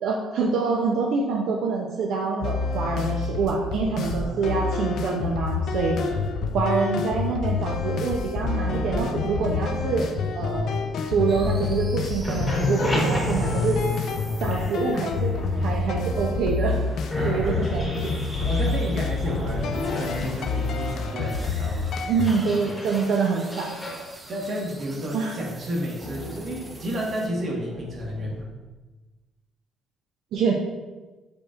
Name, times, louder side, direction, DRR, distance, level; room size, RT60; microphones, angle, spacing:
voice 1, 0.0-6.0 6.5-10.1 10.3-10.7 11.1-13.8 14.4-16.8 17.2-17.9 22.1-23.7 25.1-25.3 30.3-30.5, right 4 dB, 70° right, -1 dB, 0.5 m, -26 dB
sound 1, 2.4-22.3, left 4 dB, 60° left, 0.4 m, -28 dB
voice 2, 4.0-4.6 6.0-6.3 17.1-17.8 18.4-22.1 24.3-28.4, right 1 dB, 45° right, -2 dB, 1.2 m, -32 dB
sound 2, 8.7-11.8 12.1-16.0 16.7-16.8 17.1-28.4, left 1 dB, 10° left, 1.1 m, -33 dB
sound 3, 11.3-27.3, right 2 dB, 20° right, 0.6 m, -44 dB
5.1 x 4.3 x 2.4 m, 1.2 s
cardioid pair, 125°, 0 cm